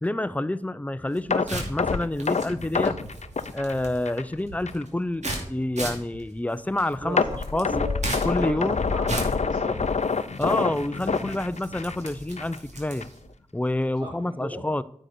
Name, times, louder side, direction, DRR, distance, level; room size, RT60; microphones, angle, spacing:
voice 1, 0.0-3.0 3.5-7.2 7.5-7.7 8.2-8.8 10.4-13.1 13.5-14.8, left 1 dB, 10° left, 14 dB, 0.6 m, -28 dB
sound 1, 1.0-13.3, right 1 dB, 75° right, 2.7 m, -37 dB
sound 2, 1.3-4.3 4.7-4.8 5.3-5.4 7.2-12.1 12.4-12.6 13.0-13.1, left 5 dB, 70° left, 0.7 m, -26 dB
voice 2, 7.0-7.9 8.4-9.8 14.0-14.6, right 1 dB, 35° right, -4 dB, 2.9 m, -36 dB
9.8 x 6.6 x 4.3 m, 0.68 s
cardioid pair, 45°, 12 cm